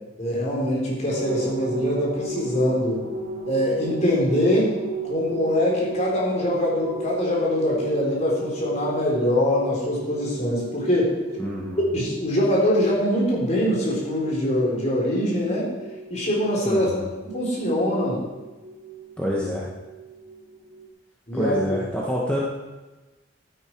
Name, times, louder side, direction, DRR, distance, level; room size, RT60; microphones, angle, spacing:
voice 1, 0.2-3.0 3.5-4.7 5.0-11.1 11.9-15.7 16.1-16.9 17.3-18.2 21.3-21.8, left 1 dB, 40° left, -4 dB, 3.8 m, -23 dB
sound 1, 1.1-20.9, right 3 dB, 80° right, 1.1 m, -35 dB
voice 2, 11.4-11.9 16.7-17.1 19.2-19.7 21.3-22.4, equal, 5° left, -5 dB, 1.4 m, -27 dB
12.0 x 10.0 x 4.6 m, 1.2 s
head